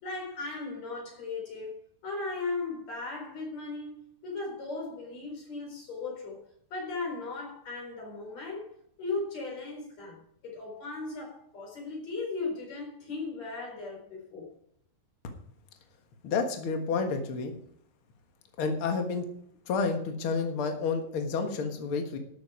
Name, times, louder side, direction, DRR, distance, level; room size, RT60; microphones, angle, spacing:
voice 1, 0.0-6.4 6.7-14.5, left 3 dB, 40° left, 5.1 m, -37 dB
voice 2, 16.2-17.5 18.6-19.2 19.7-22.2, left 4 dB, 85° left, 1.1 m, -30 dB
12.5 x 8.9 x 4.9 m
omnidirectional pair, 5.0 m